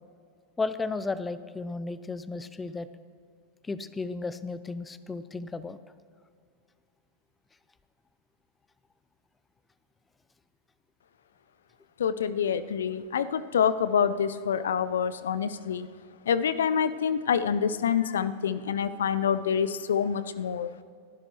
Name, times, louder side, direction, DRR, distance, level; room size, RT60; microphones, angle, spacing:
voice 1, 0.6-2.9 3.6-5.8, left 3 dB, 15° left, 14 dB, 0.6 m, -34 dB
voice 2, 12.0-15.9 16.3-20.7, left 7 dB, 70° left, 15 dB, 0.5 m, -26 dB
29.0 x 12.0 x 3.2 m, 2.2 s
figure-of-eight pair, 90°, 0 cm